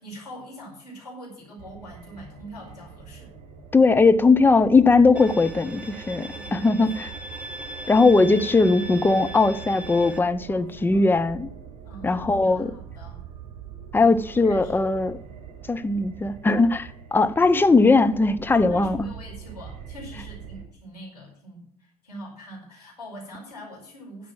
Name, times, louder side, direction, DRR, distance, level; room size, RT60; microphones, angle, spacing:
voice 1, 0.0-3.3 6.3-7.0 10.5-11.1 11.8-13.2 14.4-14.8 18.5-24.3, equal, 80° left, 5.2 m, -43 dB
sound 1, 1.6-20.6, right 8 dB, 35° right, 4.6 m, -43 dB
voice 2, 3.7-7.1 7.9-11.5 12.0-12.7 13.9-15.2 15.7-19.1, left 3 dB, 10° left, 0.7 m, -19 dB
Bowed string instrument, 5.2-10.2, right 1 dB, 5° right, 1.6 m, -39 dB
10.5 x 7.5 x 7.3 m
figure-of-eight pair, 65°, 20 cm